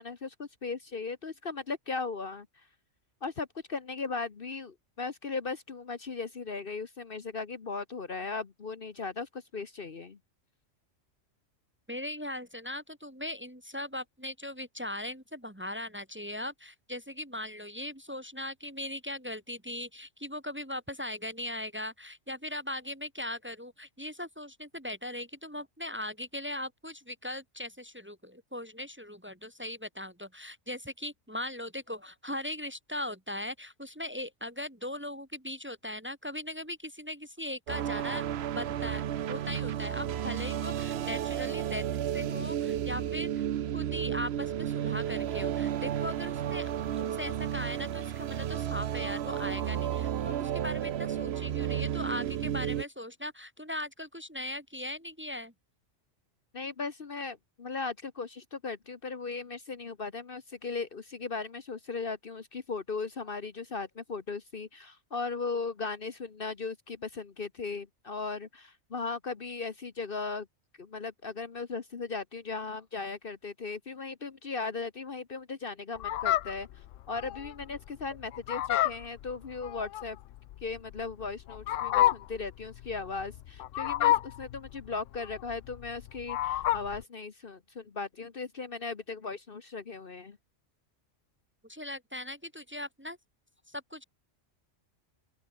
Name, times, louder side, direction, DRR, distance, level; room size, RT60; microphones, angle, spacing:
voice 1, 0.0-2.6 3.2-10.2 56.5-70.5 70.8-80.2 80.6-90.4, left 4 dB, 45° left, 1.3 m, -37 dB
voice 2, 11.9-38.2 38.5-39.0 39.3-41.8 42.1-43.4 43.7-46.7 47.0-55.5 91.7-93.2 93.7-94.0, left 1 dB, 10° right, 1.5 m, -39 dB
sound 1, 37.7-52.8, right 10 dB, 60° right, 0.9 m, -32 dB
Fowl, 76.0-87.0, left 13 dB, 80° left, 0.9 m, -30 dB
open air
omnidirectional pair, 1.3 m